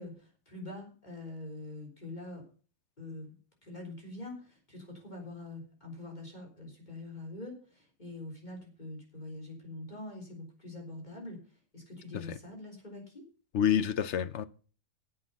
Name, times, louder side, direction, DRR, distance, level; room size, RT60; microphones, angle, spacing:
voice 1, 0.0-2.4 3.0-3.4 3.6-11.4 11.7-13.2, left 2 dB, 25° left, 3.9 m, -44 dB
voice 2, 13.5-14.5, left 9 dB, 55° left, 0.9 m, -28 dB
10.5 x 8.0 x 6.9 m
omnidirectional pair, 1.7 m